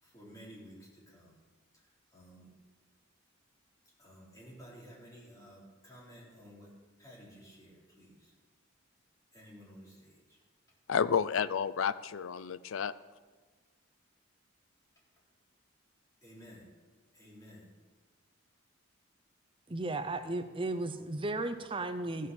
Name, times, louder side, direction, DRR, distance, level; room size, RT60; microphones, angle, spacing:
voice 1, 0.0-1.4 1.7-2.5 4.0-8.3 9.3-10.4 16.2-16.7 17.1-17.8 20.9-21.1, equal, 20° left, -6 dB, 3.8 m, -54 dB
voice 2, 10.9-12.9, left 7 dB, 80° left, 16 dB, 0.4 m, -30 dB
voice 3, 19.7-22.3, right 2 dB, 25° right, 8 dB, 0.7 m, -35 dB
14.5 x 6.6 x 7.1 m, 1.4 s
head